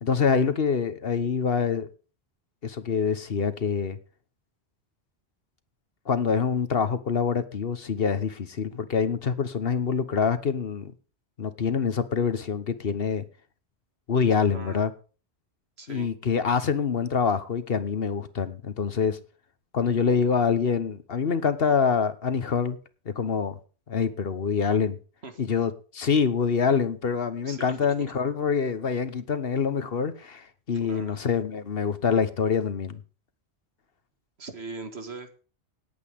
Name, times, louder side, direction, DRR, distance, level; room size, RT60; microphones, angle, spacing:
voice 1, 0.0-1.9 2.6-4.0 6.1-10.9 11.4-13.2 14.1-14.9 15.9-19.2 19.7-22.8 23.0-23.6 23.9-25.0 25.4-33.0, left 6 dB, 60° left, 1.3 m, -25 dB
voice 2, 14.5-14.9 15.8-16.1 25.2-25.4 27.5-27.9 30.7-31.2 34.4-35.4, right 3 dB, 70° right, 2.1 m, -40 dB
18.5 x 8.6 x 3.6 m
omnidirectional pair, 1.1 m